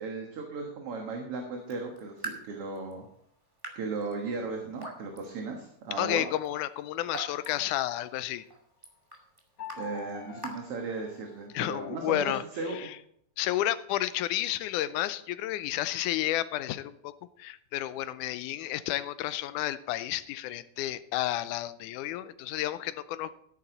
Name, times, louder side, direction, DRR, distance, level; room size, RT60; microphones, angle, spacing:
voice 1, 0.0-3.1 3.8-6.3 9.7-12.9, right 3 dB, 55° right, 1 dB, 2.3 m, -36 dB
Raindrop / Drip, 1.6-11.5, right 2 dB, 10° right, 1.8 m, -47 dB
voice 2, 6.0-8.5 11.5-12.4 12.7-13.0 13.4-17.1 17.4-23.3, left 14 dB, 90° left, 14 dB, 2.1 m, -31 dB
sound 1, 6.7-8.3 9.6-11.8, left 4 dB, 70° left, 0.8 m, -46 dB
13.5 x 10.5 x 4.0 m, 0.70 s
omnidirectional pair, 3.5 m